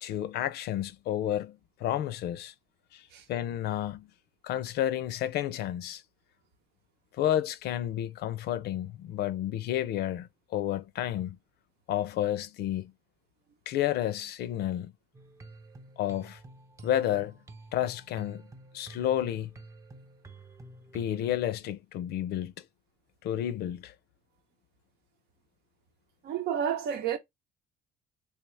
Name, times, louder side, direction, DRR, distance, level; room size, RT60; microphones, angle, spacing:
voice 1, 0.0-2.5 2.9-4.1 4.4-6.0 7.2-11.4 11.9-12.9 13.7-14.9 16.0-16.4 16.8-17.4 17.7-18.5 18.7-19.5 20.9-22.5 23.2-23.9, left 12 dB, 70° left, 0.5 m, -31 dB
sound 1, 15.1-21.6, right 2 dB, 20° right, 0.6 m, -50 dB
voice 2, 26.2-27.2, right 8 dB, 75° right, 0.8 m, -30 dB
3.5 x 2.8 x 3.2 m
cardioid pair, 110°, 17 cm